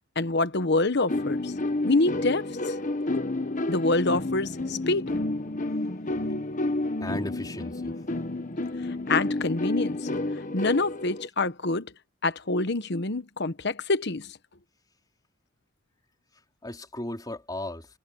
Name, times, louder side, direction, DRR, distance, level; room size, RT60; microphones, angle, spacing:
voice 1, 0.2-1.5 1.8-2.5 3.7-5.1 9.1-10.0 10.5-11.9 12.2-14.3, left 2 dB, 60° left, 1.2 m, -26 dB
sound 1, 1.1-11.3, left 2 dB, 40° left, 1.2 m, -30 dB
voice 2, 7.0-8.0 16.6-17.9, left 1 dB, 20° left, 4.3 m, -35 dB
head